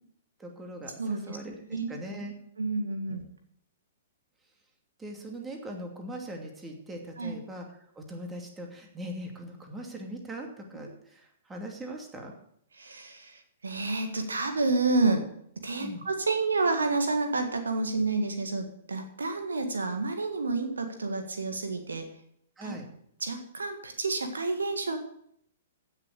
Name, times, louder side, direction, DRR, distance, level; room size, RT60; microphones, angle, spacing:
voice 1, 0.4-2.3 3.1-3.2 5.0-7.7 8.0-12.3 15.8-16.0 22.6-22.9, right 1 dB, 10° right, 2 dB, 2.6 m, -40 dB
voice 2, 1.0-1.4 1.7-1.9 2.6-3.2 7.2-7.3 12.7-15.3 15.6-22.1 22.6-22.7 23.2-25.0, right 3 dB, 70° right, 6 dB, 1.7 m, -29 dB
16.5 x 6.7 x 6.6 m, 0.70 s
figure-of-eight pair, 110°, 0 cm